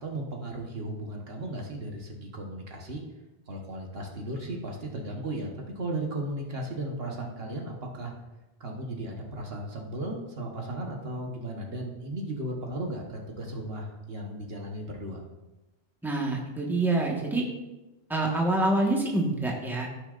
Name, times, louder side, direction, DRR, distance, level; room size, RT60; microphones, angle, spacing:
voice 1, 0.0-3.0 3.5-8.1 8.6-15.2, right 1 dB, 65° right, 0 dB, 1.4 m, -35 dB
voice 2, 16.0-17.4 18.1-19.9, right 2 dB, ahead, -2 dB, 1.4 m, -26 dB
15.5 x 6.2 x 2.5 m, 1.1 s
omnidirectional pair, 1.1 m